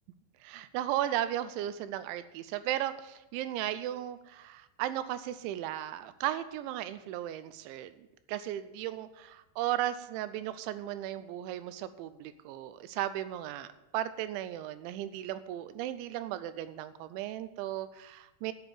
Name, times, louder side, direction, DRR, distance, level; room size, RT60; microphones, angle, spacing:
voice 1, 0.4-18.5, right 12 dB, 80° right, 13 dB, 2.9 m, -36 dB
12.0 x 7.1 x 7.6 m, 0.98 s
omnidirectional pair, 5.5 m